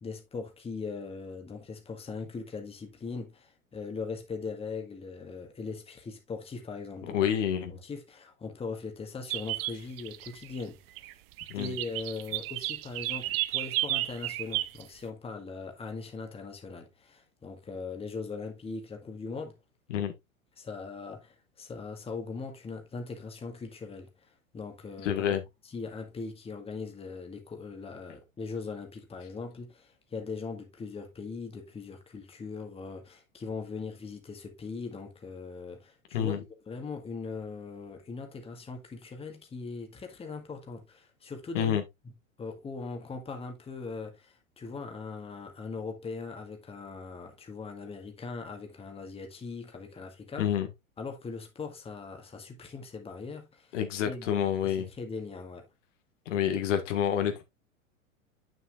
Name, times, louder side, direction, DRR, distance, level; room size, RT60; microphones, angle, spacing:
voice 1, 0.0-7.2 7.7-11.1 11.5-19.6 20.6-25.3 25.7-41.8 42.4-50.5 51.0-53.8 54.1-55.7, left 4 dB, 15° left, 1.8 m, -40 dB
voice 2, 7.1-7.7 11.5-11.7 19.9-20.1 25.0-25.4 36.1-36.4 41.5-41.8 50.4-50.7 53.7-54.9 56.3-57.4, left 10 dB, 60° left, 1.7 m, -28 dB
sound 1, 9.3-10.6 11.0-11.1 11.4-14.8, right 16 dB, 45° right, 0.7 m, -33 dB
9.3 x 6.5 x 2.5 m
figure-of-eight pair, 100°, 41 cm